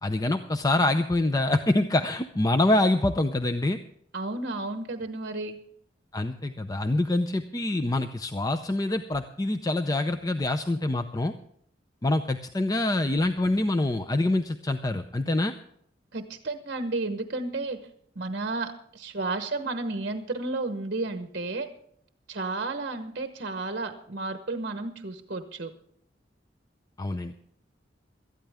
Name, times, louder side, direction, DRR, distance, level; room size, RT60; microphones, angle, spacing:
voice 1, 0.0-3.8 6.1-11.3 12.0-15.5 27.0-27.3, left 2 dB, 20° left, 8 dB, 0.5 m, -25 dB
voice 2, 4.1-5.6 16.1-17.8 18.1-21.7 22.3-25.7, right 3 dB, 55° right, 7 dB, 1.0 m, -32 dB
18.0 x 13.0 x 3.5 m, 0.69 s
head